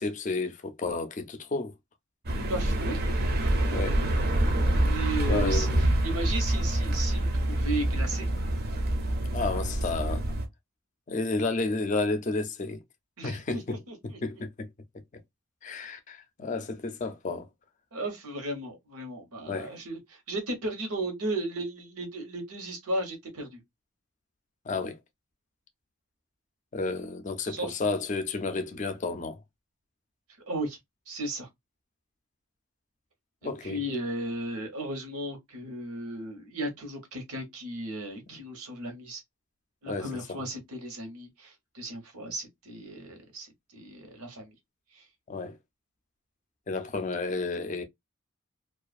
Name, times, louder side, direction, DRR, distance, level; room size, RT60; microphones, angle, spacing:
voice 1, 0.0-1.7 3.7-4.0 5.3-5.8 9.3-10.3 11.1-12.8 13.2-13.8 14.2-14.7 15.6-17.5 19.5-19.7 24.7-25.0 26.7-29.4 33.4-33.8 38.3-38.4 39.9-40.4 45.3-45.6 46.7-47.8, left 3 dB, 35° left, 0.4 m, -31 dB
sound 1, 2.3-10.5, right 1 dB, 45° right, 0.5 m, -26 dB
voice 2, 2.5-3.0 4.8-5.7 6.0-8.3 13.2-14.2 17.9-23.6 27.5-27.8 30.5-30.8 31.1-31.5 33.4-39.2 39.8-44.5 44.9-45.0, right 1 dB, 90° right, 1.0 m, -35 dB
2.3 x 2.3 x 2.4 m
head